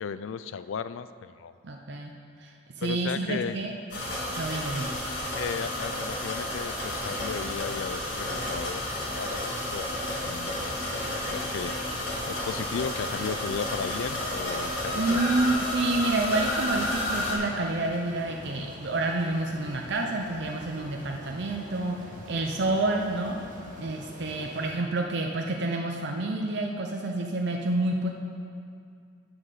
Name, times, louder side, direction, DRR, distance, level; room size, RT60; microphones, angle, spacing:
voice 1, 0.0-1.5 2.8-3.6 5.4-8.8 9.2-9.9 10.2-10.6 11.1-15.2 24.2-24.4, left 6 dB, 85° left, 14 dB, 0.4 m, -35 dB
voice 2, 1.6-2.1 2.4-2.5 2.8-3.7 4.4-4.9 14.9-22.0 22.3-23.4 23.8-28.1, right 2 dB, 60° right, 1 dB, 0.7 m, -28 dB
sound 1, 3.9-17.3, left 1 dB, 65° left, 2.2 m, -31 dB
sound 2, 6.4-24.7, equal, 45° right, 1.7 m, -46 dB
8.8 x 7.3 x 6.8 m, 2.3 s
head